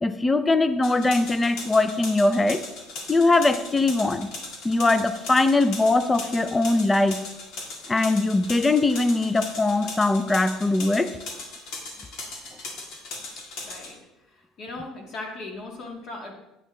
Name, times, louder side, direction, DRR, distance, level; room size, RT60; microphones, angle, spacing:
voice 1, 0.0-2.6 3.1-4.3 4.6-7.2 7.9-11.2, left 2 dB, 15° left, 12 dB, 0.5 m, -21 dB
sound 1, 0.8-13.9, left 3 dB, 75° left, 1.9 m, -38 dB
voice 2, 13.7-14.0 14.3-16.3, left 2 dB, 50° left, 1 dB, 1.9 m, -38 dB
8.8 x 8.7 x 3.2 m, 0.95 s
cardioid pair, 125°, 0 cm